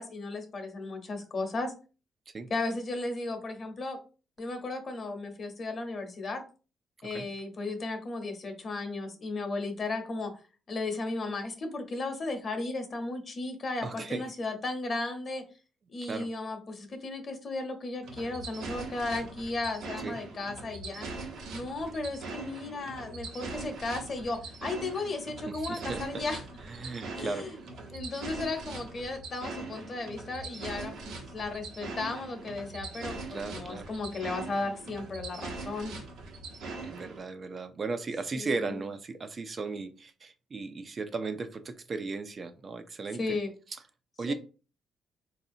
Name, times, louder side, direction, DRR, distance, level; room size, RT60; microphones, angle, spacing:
voice 1, 0.0-1.7 2.5-4.0 4.4-6.4 7.0-10.3 10.7-15.4 15.9-21.1 21.5-26.4 27.2-27.5 27.9-36.0 38.3-38.6 43.2-43.5 44.3-44.4, left 3 dB, 45° left, 0.9 m, -35 dB
voice 2, 13.8-14.3 16.0-16.3 20.0-20.2 25.5-26.3 26.7-27.5 33.3-33.9 36.8-43.4 44.2-44.3, right 4 dB, 40° right, 0.4 m, -36 dB
sound 1, 18.0-37.2, right 3 dB, 85° right, 1.0 m, -41 dB
3.9 x 2.8 x 2.6 m
cardioid pair, 90°, 0 cm